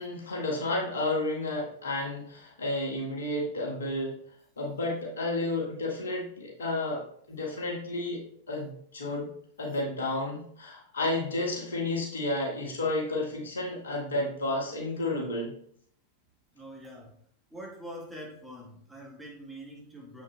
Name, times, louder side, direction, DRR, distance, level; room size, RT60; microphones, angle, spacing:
voice 1, 0.0-4.1 4.6-9.3 9.6-15.5, left 2 dB, 70° left, -2 dB, 1.7 m, -31 dB
voice 2, 16.5-17.1 17.5-20.2, equal, 5° right, -3 dB, 1.8 m, -44 dB
7.2 x 6.0 x 2.3 m, 0.64 s
figure-of-eight pair, 90°, 0 cm